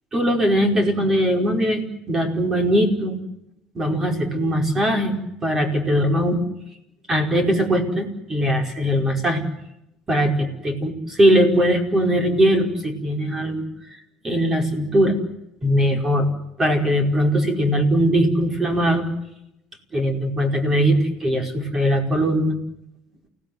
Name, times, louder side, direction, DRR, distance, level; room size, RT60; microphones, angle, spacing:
voice 1, 0.1-3.2 3.7-6.4 7.1-9.4 10.1-13.6 14.2-15.2 15.6-16.3 16.6-19.1 19.9-22.5, equal, 20° right, 4 dB, 5.1 m, -20 dB
29.5 x 18.0 x 9.4 m, 0.84 s
cardioid pair, 150°, 2 cm